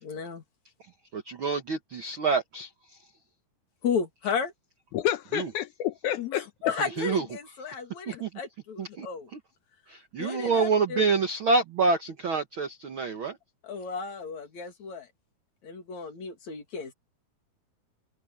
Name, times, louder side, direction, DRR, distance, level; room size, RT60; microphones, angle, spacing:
voice 1, 0.0-0.4 3.8-4.5 6.2-9.3 10.2-11.1 13.6-15.1 15.6-16.9, left 6 dB, 50° left, 3.5 m, -33 dB
voice 2, 1.1-3.0 5.3-5.5 7.0-7.2 8.1-8.3 8.8-9.1 9.9-13.4, right 4 dB, 85° right, 1.1 m, -27 dB
voice 3, 4.9-6.5, left 11 dB, 75° left, 1.9 m, -29 dB
open air
omnidirectional pair, 4.4 m